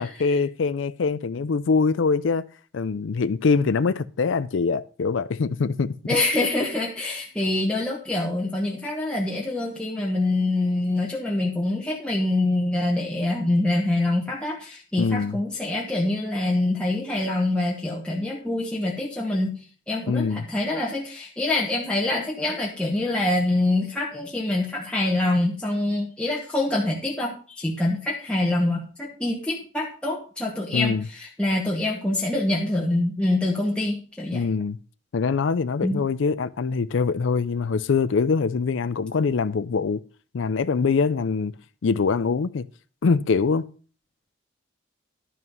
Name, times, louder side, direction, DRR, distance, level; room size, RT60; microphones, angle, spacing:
voice 1, 0.0-2.4 2.7-5.9 15.0-15.4 20.1-20.5 30.7-31.0 34.3-34.8 35.1-40.0 40.3-41.5 41.8-42.6 43.0-43.7, left 5 dB, 75° left, 0.4 m, -23 dB
voice 2, 6.1-19.6 19.9-34.5 35.8-36.0, left 2 dB, 5° left, 1.1 m, -25 dB
11.0 x 5.7 x 5.3 m
head